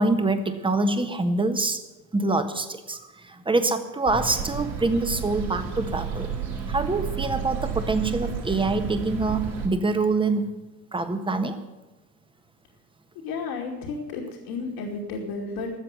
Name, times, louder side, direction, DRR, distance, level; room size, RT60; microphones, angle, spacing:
voice 1, 0.0-1.8 2.1-6.3 6.7-10.5 10.9-11.6, right 3 dB, 10° right, 8 dB, 1.4 m, -25 dB
sound 1, 4.1-9.7, right 5 dB, 65° right, 4.7 m, -31 dB
voice 2, 13.2-15.7, left 4 dB, 60° left, -3 dB, 2.8 m, -32 dB
13.5 x 7.5 x 9.6 m, 1.1 s
hypercardioid pair, 80°, 46 cm